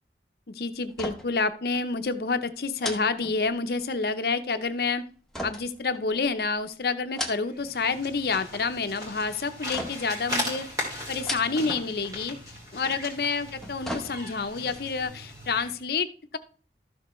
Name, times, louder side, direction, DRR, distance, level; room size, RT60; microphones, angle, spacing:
voice 1, 0.5-5.0 5.4-10.7 11.1-12.4 12.7-16.4, left 4 dB, 60° left, 10 dB, 0.6 m, -28 dB
sound 1, 0.9-1.5 1.7-1.9 2.8-3.9 5.3-6.5 7.0-7.8 8.1-8.6 9.7-10.2 11.1-11.9 12.2-12.3 13.4-14.6 15.0-15.1, left 1 dB, 5° left, 0.8 m, -37 dB
sound 2, 7.5-15.8, left 1 dB, 20° right, 2.4 m, -37 dB
13.0 x 6.5 x 3.1 m, 0.41 s
head